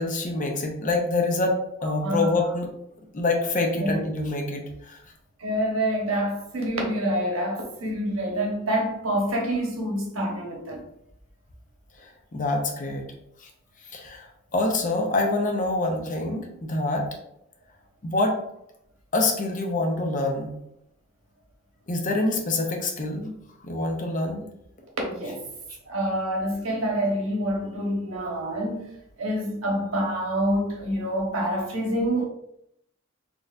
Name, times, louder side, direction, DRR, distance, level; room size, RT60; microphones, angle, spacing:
voice 1, 0.0-2.7 3.1-5.0 12.3-13.1 13.4-13.5 13.9-14.3 14.5-17.1 18.0-18.4 19.1-20.5 21.9-23.3 23.6-24.4, left 2 dB, 40° left, 0.6 m, -26 dB
voice 2, 2.0-2.4 3.8-4.0 5.4-10.8 25.1-25.4 25.9-28.9 29.2-32.2, equal, 80° right, 1.1 m, -27 dB
4.1 x 2.9 x 2.5 m
head